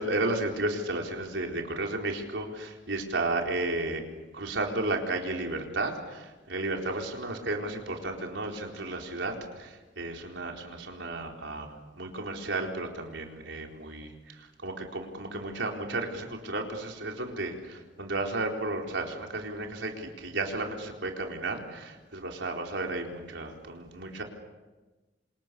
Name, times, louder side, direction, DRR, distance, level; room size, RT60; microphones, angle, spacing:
voice 1, 0.0-4.0 4.3-24.2, right 2 dB, 80° right, 1 dB, 4.3 m, -33 dB
29.0 x 27.0 x 7.0 m, 1.2 s
head